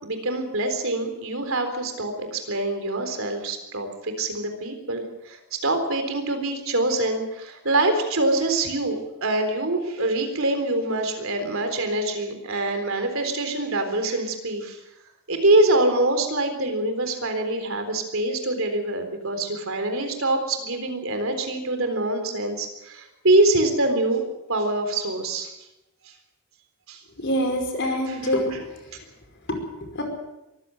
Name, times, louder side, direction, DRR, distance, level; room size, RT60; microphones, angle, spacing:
voice 1, 0.0-14.8 15.3-25.5 26.9-27.0, right 2 dB, 65° right, 6 dB, 3.9 m, -24 dB
voice 2, 27.2-29.0 29.5-29.6 29.9-30.0, equal, 55° left, 4 dB, 5.4 m, -26 dB
23.5 x 15.0 x 7.9 m, 0.93 s
head